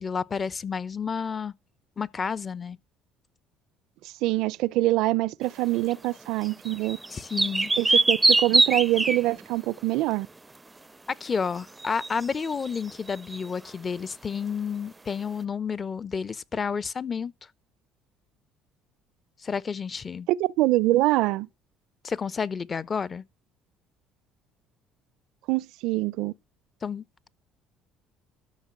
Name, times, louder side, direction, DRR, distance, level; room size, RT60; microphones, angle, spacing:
voice 1, 0.0-1.5 2.0-2.8 7.1-8.0 11.2-17.3 19.4-20.3 22.0-23.2 26.8-27.3, left 6 dB, 35° left, 0.8 m, -31 dB
voice 2, 4.0-7.0 7.8-10.3 20.3-21.5 25.5-26.3, right 18 dB, 75° right, 0.6 m, -24 dB
sound 1, 5.9-6.0 6.4-9.4 11.8-13.5, right 3 dB, 15° right, 0.5 m, -23 dB
12.5 x 5.8 x 7.3 m
supercardioid pair, 75°, 0 cm